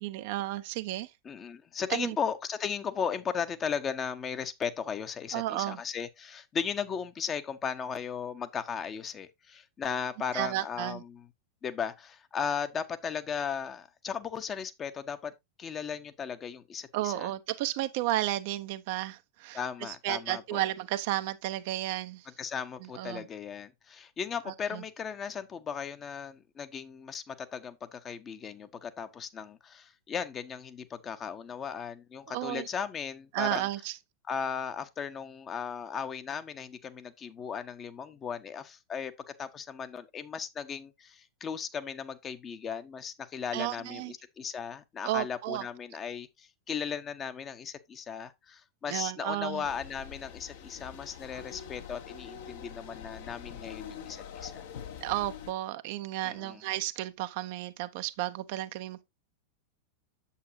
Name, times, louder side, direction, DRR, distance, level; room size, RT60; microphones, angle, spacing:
voice 1, 0.0-1.1 1.9-2.2 5.3-5.8 10.3-11.0 16.9-22.3 22.8-23.3 24.5-24.8 32.3-32.7 33.3-34.0 43.5-44.1 45.0-45.7 48.9-49.7 55.0-59.0, right 16 dB, 50° right, 0.7 m, -33 dB
voice 2, 1.2-11.2 11.6-15.3 15.6-17.3 19.5-20.6 22.4-33.7 34.3-54.6 56.2-56.6, left 7 dB, 25° left, 0.9 m, -36 dB
sound 1, 49.6-55.5, left 8 dB, 55° left, 1.2 m, -44 dB
8.4 x 7.6 x 2.7 m
figure-of-eight pair, 90°, 0 cm